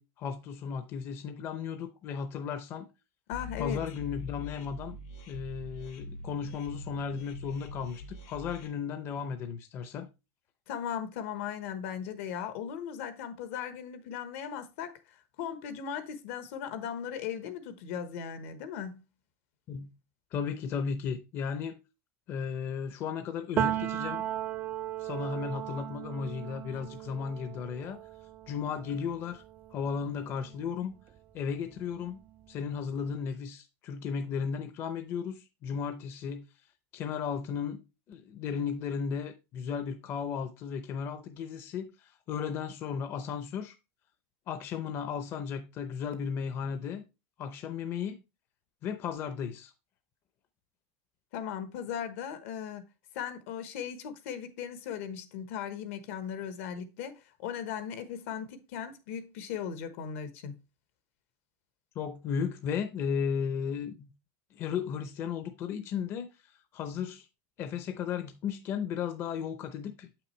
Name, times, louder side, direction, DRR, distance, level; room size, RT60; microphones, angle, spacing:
voice 1, 0.0-2.9 3.6-5.0 5.3-10.1 19.7-19.9 20.3-21.8 22.3-24.2 25.0-28.0 28.5-29.4 29.7-31.0 31.3-32.2 32.5-36.4 36.9-37.8 38.1-43.7 44.5-47.0 47.4-48.2 48.8-49.7 62.0-64.1 64.5-66.3 66.7-67.3 67.6-70.1, left 6 dB, 35° left, 0.6 m, -35 dB
sound 1, 3.3-8.7, left 3 dB, 90° left, 2.6 m, -43 dB
voice 2, 3.3-3.8 10.7-19.0 51.3-52.8 53.1-60.5, left 8 dB, 70° left, 1.1 m, -38 dB
Piano, 23.6-31.2 31.5-33.1, right 11 dB, 25° right, 0.3 m, -37 dB
7.6 x 5.9 x 3.2 m
supercardioid pair, 165°, 7 cm